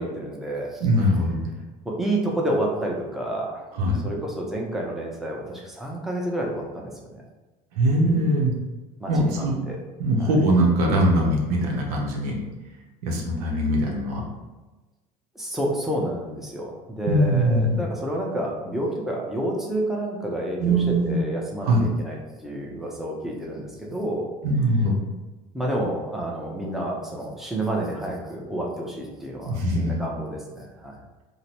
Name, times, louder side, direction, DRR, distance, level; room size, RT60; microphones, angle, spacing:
voice 1, 0.0-0.8 1.8-3.7 4.0-6.9 9.0-9.8 10.2-10.3 15.4-24.3 25.5-30.9, right 1 dB, ahead, -2 dB, 0.7 m, -29 dB
voice 2, 0.8-1.5 3.7-4.0 7.8-8.5 9.1-9.6 10.0-12.3 13.0-14.2 17.0-17.8 20.6-21.2 21.6-21.8 24.4-25.0 29.4-30.0, right 1 dB, 85° right, -1 dB, 0.8 m, -21 dB
3.8 x 2.2 x 2.9 m, 1.2 s
supercardioid pair, 90°, 19 cm